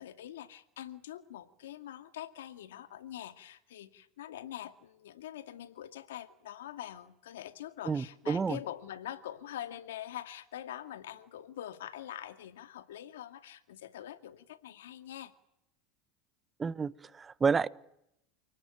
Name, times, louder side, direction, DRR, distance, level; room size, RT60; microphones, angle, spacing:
voice 1, 0.0-15.3, left 11 dB, 85° left, 10 dB, 2.3 m, -44 dB
voice 2, 7.9-8.6 16.6-17.7, right 5 dB, 20° right, 18 dB, 1.1 m, -30 dB
29.5 x 19.5 x 9.2 m, 0.80 s
supercardioid pair, 105°, 0 cm